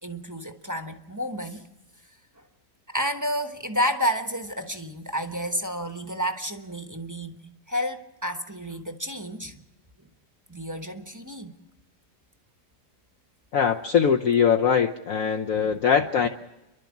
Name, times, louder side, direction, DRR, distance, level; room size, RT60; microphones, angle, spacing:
voice 1, 0.0-1.7 2.9-9.6 10.5-11.5 15.5-15.8, equal, 15° right, 6 dB, 1.0 m, -30 dB
voice 2, 13.5-16.3, left 7 dB, 60° left, 2 dB, 1.3 m, -22 dB
30.0 x 12.0 x 7.3 m, 1.0 s
omnidirectional pair, 1.8 m